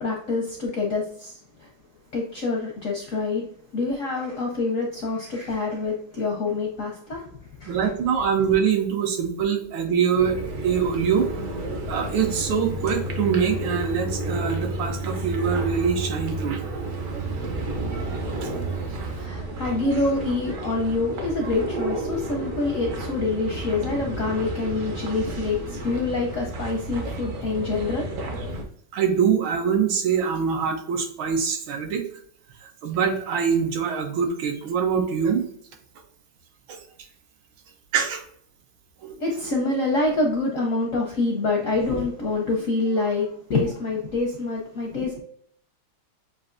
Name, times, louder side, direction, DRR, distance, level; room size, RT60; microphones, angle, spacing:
voice 1, 0.0-1.7 2.1-3.4 3.7-7.3 7.6-7.8 19.0-28.2 28.6-28.7 39.2-45.2, left 3 dB, 70° left, -1 dB, 0.7 m, -26 dB
voice 2, 7.7-10.4 10.6-11.3 11.8-16.6 17.1-17.2 18.4-18.5 28.9-32.0 32.6-35.4 36.7-36.8 37.9-38.2 39.0-39.2, right 7 dB, 80° right, 4 dB, 1.6 m, -24 dB
sound 1, 10.1-28.6, right 2 dB, 55° right, 0.9 m, -31 dB
7.4 x 2.5 x 2.5 m, 0.64 s
omnidirectional pair, 2.2 m